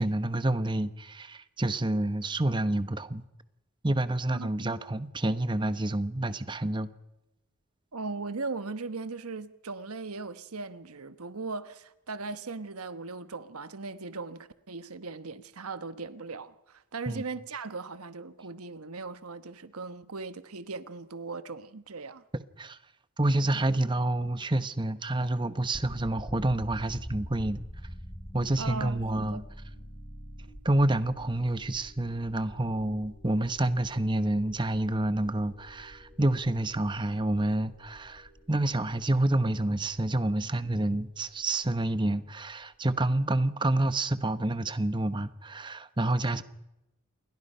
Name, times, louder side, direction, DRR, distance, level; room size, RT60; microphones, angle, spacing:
voice 1, 0.0-3.2 3.8-6.9 17.1-17.2 22.6-22.8 23.2-27.6 28.3-29.4 30.6-46.4, right 1 dB, 20° right, 1.0 m, -28 dB
voice 2, 4.3-4.7 7.9-22.2 28.6-29.4, right 3 dB, 85° right, 1.2 m, -38 dB
sound 1, 25.7-42.6, equal, 5° left, 4.8 m, -47 dB
28.5 x 22.0 x 5.6 m
head